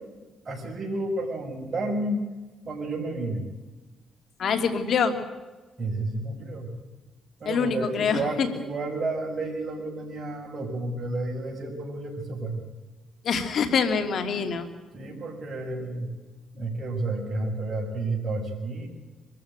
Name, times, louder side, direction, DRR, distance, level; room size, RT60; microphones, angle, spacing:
voice 1, 0.4-2.2 2.6-3.4 5.8-6.7 7.4-12.6 14.9-16.2 16.5-18.9, right 2 dB, 40° right, 1 dB, 6.9 m, -31 dB
voice 2, 4.4-5.1 7.4-8.5 13.2-14.6, left 6 dB, 60° left, 7 dB, 3.0 m, -25 dB
23.5 x 14.5 x 9.1 m, 1.2 s
cardioid pair, 90°, 0 cm